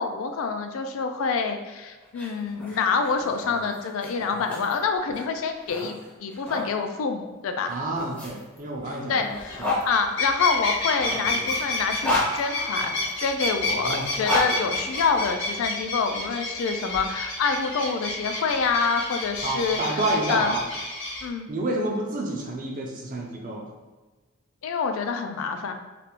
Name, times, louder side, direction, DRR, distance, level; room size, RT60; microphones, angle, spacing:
voice 1, 0.0-5.9 6.2-7.7 8.9-20.0 20.3-20.5 21.2-21.5 24.6-25.7, left 5 dB, 75° left, 6 dB, 0.3 m, -27 dB
sound 1, 2.0-6.7 7.6-9.8 10.8-13.1 13.9-15.6, left 2 dB, 5° left, 0.6 m, -32 dB
voice 2, 7.7-9.8 13.6-14.1 19.4-20.6 21.5-23.6, right 1 dB, 40° right, 0 dB, 0.5 m, -29 dB
sound 2, 9.4-9.6 9.9-21.3, left 2 dB, 60° left, 0.7 m, -30 dB
3.3 x 2.4 x 2.9 m, 1.2 s
head